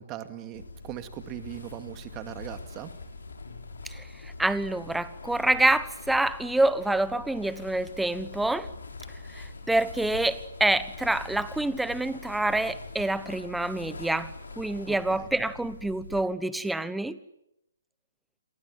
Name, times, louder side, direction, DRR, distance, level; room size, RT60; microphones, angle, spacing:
voice 1, 0.0-2.9 14.9-15.3, right 12 dB, 20° right, 9 dB, 2.4 m, -40 dB
sound 1, 0.5-16.2, left 3 dB, 70° left, 7.2 m, -43 dB
voice 2, 3.8-8.7 9.3-17.2, right 2 dB, 5° right, 16 dB, 1.1 m, -27 dB
29.0 x 23.5 x 8.9 m, 0.86 s
figure-of-eight pair, 135°, 0 cm